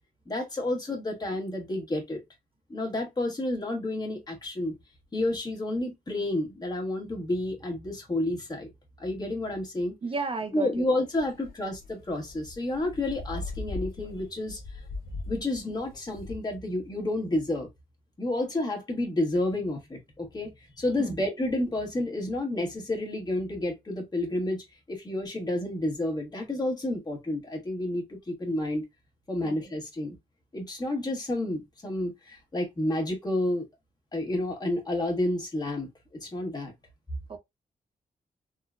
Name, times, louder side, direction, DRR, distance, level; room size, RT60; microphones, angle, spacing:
voice 1, 0.3-2.2 2.7-4.7 5.1-8.7 9.0-9.9 10.5-14.6 15.3-17.7 18.2-28.8 29.3-30.2 30.5-33.7 34.1-35.9 36.2-36.7, left 1 dB, 25° left, 1.3 m, -30 dB
voice 2, 10.0-10.7 21.0-21.2 29.4-29.5 37.3-37.4, right 4 dB, 35° right, 0.5 m, -33 dB
sound 1, 11.1-16.4, left 3 dB, 75° left, 0.9 m, -39 dB
3.7 x 2.1 x 2.3 m
cardioid pair, 105°, 15 cm